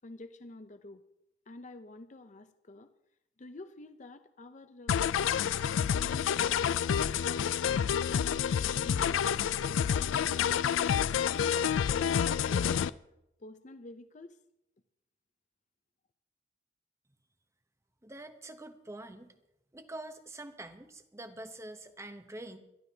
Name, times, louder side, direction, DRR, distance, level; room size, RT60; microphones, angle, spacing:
voice 1, 0.0-1.0 1.5-2.9 3.4-5.6 5.9-10.4 10.8-12.9 13.4-14.4, left 2 dB, 40° left, 9 dB, 0.6 m, -50 dB
sound 1, 4.9-12.9, left 8 dB, 85° left, 0.4 m, -28 dB
voice 2, 18.0-19.3 19.7-22.6, right 1 dB, 15° right, 9 dB, 0.8 m, -45 dB
21.5 x 13.5 x 2.8 m, 0.87 s
head